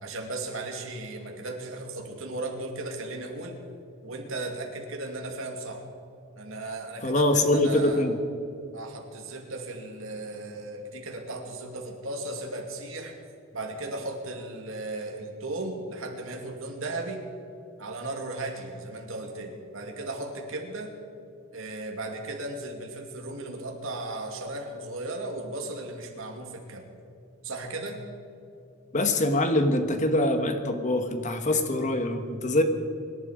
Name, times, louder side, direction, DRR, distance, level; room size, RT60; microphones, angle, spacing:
voice 1, 0.0-3.6 4.0-5.8 6.4-8.0 8.7-13.1 13.5-17.2 17.8-20.9 21.5-26.9 27.4-28.0, right 2 dB, 70° right, 2 dB, 2.5 m, -36 dB
voice 2, 7.0-8.2 28.9-32.6, left 1 dB, 35° left, 7 dB, 1.3 m, -24 dB
24.5 x 11.0 x 5.1 m, 2.7 s
head